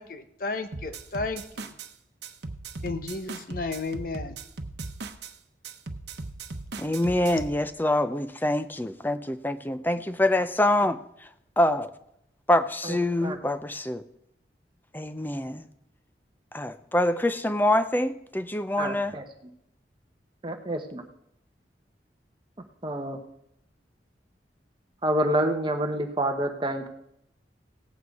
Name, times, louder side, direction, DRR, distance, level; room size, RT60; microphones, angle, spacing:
voice 1, 0.0-1.7 2.8-4.4, left 3 dB, 50° left, 9 dB, 0.9 m, -33 dB
sound 1, 0.7-1.9 2.2-5.3 5.6-7.6, right 3 dB, 70° right, 0.9 m, -38 dB
voice 2, 6.8-11.3 11.6-11.9 12.5-14.0 14.9-15.7 16.5-19.1, left 1 dB, 10° left, 11 dB, 0.5 m, -25 dB
voice 3, 18.8-19.2 20.4-21.1 22.8-23.2 25.0-26.9, right 1 dB, 25° right, 5 dB, 0.9 m, -27 dB
17.0 x 8.5 x 4.7 m, 0.78 s
head